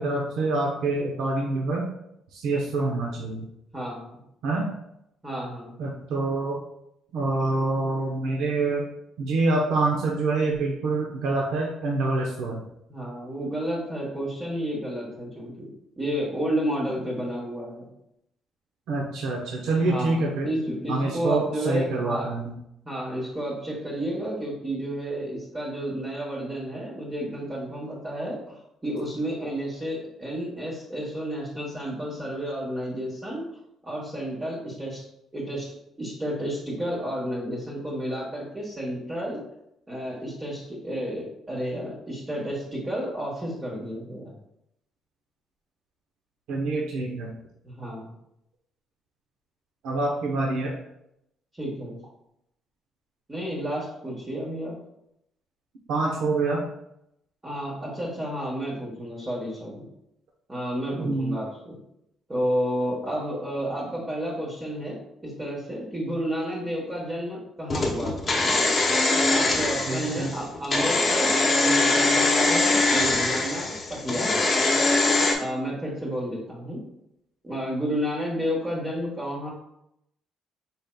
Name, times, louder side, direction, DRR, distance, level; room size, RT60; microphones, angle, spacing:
voice 1, 0.0-1.8 2.3-3.5 4.4-4.7 5.8-6.6 7.1-8.9 9.2-12.6 18.9-20.5 20.9-22.5 46.5-47.4 49.8-50.8 55.9-56.6 61.0-61.4 69.9-70.4, right 3 dB, 80° right, -2 dB, 0.8 m, -26 dB
voice 2, 3.7-4.2 5.2-5.7 12.9-15.6 16.0-17.9 19.8-22.3 22.8-28.4 28.8-33.4 33.8-35.0 35.3-39.4 39.9-44.3 47.6-48.1 51.5-52.0 53.3-54.7 57.4-59.9 60.5-61.8 62.3-68.3 69.3-74.5 75.3-76.8 77.4-79.5, equal, 15° right, -7 dB, 1.1 m, -31 dB
sound 1, 67.7-75.3, left 2 dB, 30° left, 0.8 m, -22 dB
5.1 x 4.3 x 2.2 m, 0.80 s
cardioid pair, 145°, 0 cm